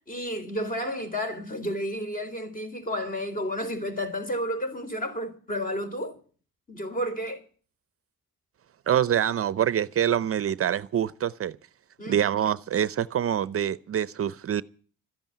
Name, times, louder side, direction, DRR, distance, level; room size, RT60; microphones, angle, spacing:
voice 1, 0.1-6.2 6.7-7.4 12.0-12.3, equal, 30° left, 4.0 m, -31 dB
voice 2, 8.9-11.6 12.1-14.6, right 10 dB, 50° right, 0.6 m, -25 dB
13.5 x 10.5 x 9.3 m
cardioid pair, 90°, 30 cm